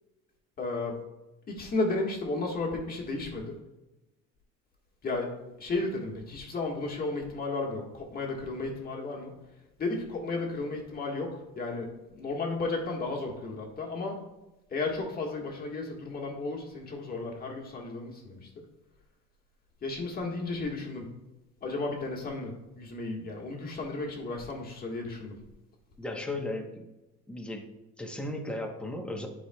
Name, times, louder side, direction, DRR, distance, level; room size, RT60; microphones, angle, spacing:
voice 1, 0.6-1.0 1.5-3.6 5.0-9.3 9.8-14.2 14.7-18.7 19.8-21.1 21.6-25.4, left 3 dB, 30° left, 0 dB, 1.6 m, -33 dB
voice 2, 26.0-26.7 27.3-27.7 28.0-29.3, left 1 dB, 5° left, 1 dB, 1.0 m, -35 dB
10.0 x 4.9 x 2.3 m, 1.0 s
cardioid pair, 125°, 29 cm